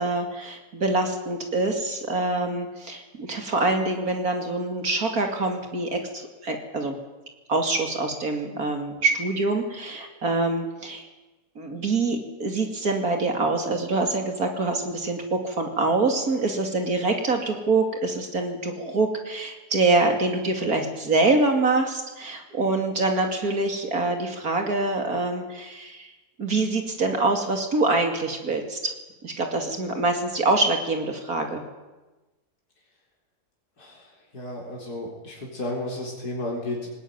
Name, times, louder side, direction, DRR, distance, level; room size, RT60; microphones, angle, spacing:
voice 1, 0.0-6.9 7.5-11.0 11.6-26.1 26.4-28.9 29.2-31.6, right 3 dB, 65° right, 4 dB, 3.0 m, -25 dB
voice 2, 33.8-36.9, left 1 dB, 70° left, -2 dB, 4.6 m, -33 dB
20.0 x 18.5 x 9.4 m, 1.1 s
omnidirectional pair, 1.7 m